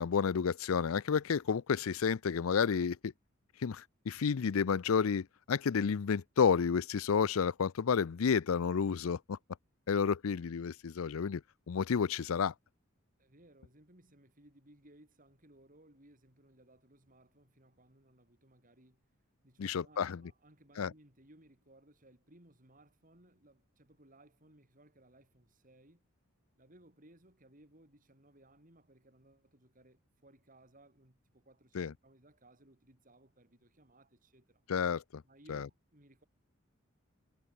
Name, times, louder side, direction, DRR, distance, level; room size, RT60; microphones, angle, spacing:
voice 1, 0.0-3.1 3.6-9.4 9.9-11.4 11.7-12.5 19.6-20.2 20.8-20.9 31.7-31.9 34.7-35.2 35.5-35.7, left 6 dB, 80° left, 0.5 m, -31 dB
voice 2, 13.2-19.0 19.4-26.1 26.6-34.6 35.2-36.2, right 1 dB, 40° right, 5.5 m, -62 dB
head